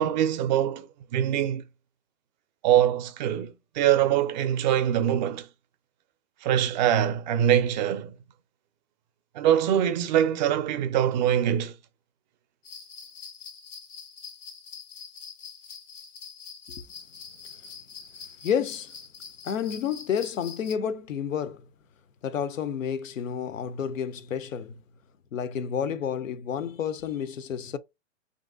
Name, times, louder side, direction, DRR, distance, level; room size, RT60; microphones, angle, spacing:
voice 1, 0.0-1.6 2.6-5.5 6.4-8.2 9.3-11.7, right 10 dB, 40° right, 0.4 m, -23 dB
sound 1, 12.6-20.7, left 6 dB, 20° left, 0.4 m, -44 dB
voice 2, 18.4-18.9 19.4-21.6 22.2-24.8 25.3-27.8, left 8 dB, 85° left, 0.5 m, -30 dB
3.1 x 2.6 x 2.4 m
hypercardioid pair, 115°, 38 cm